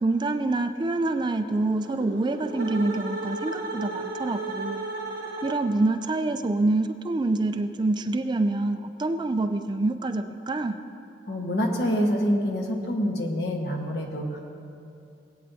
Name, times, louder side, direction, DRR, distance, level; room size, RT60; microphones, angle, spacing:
voice 1, 0.0-4.8 5.4-10.8, right 2 dB, 25° right, 8 dB, 0.3 m, -26 dB
sound 1, 1.7-5.9, right 2 dB, 65° right, 1.6 m, -34 dB
voice 2, 11.3-14.4, equal, 65° left, 1 dB, 1.3 m, -26 dB
19.5 x 8.6 x 2.8 m, 2.6 s
head